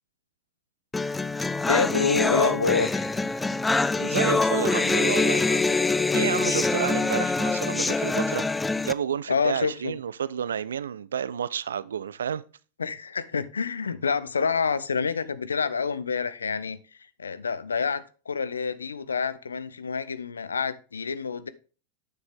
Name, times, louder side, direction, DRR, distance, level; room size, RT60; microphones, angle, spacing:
sound 1, 0.9-8.9, left 3 dB, 10° left, 0.4 m, -24 dB
voice 1, 1.6-3.1 9.3-9.9 12.8-16.8 17.2-21.5, left 5 dB, 75° left, 0.6 m, -27 dB
voice 2, 3.9-5.8 6.1-8.5 8.9-12.4, right 8 dB, 65° right, 0.4 m, -30 dB
9.3 x 6.8 x 3.6 m
figure-of-eight pair, 90°, 0 cm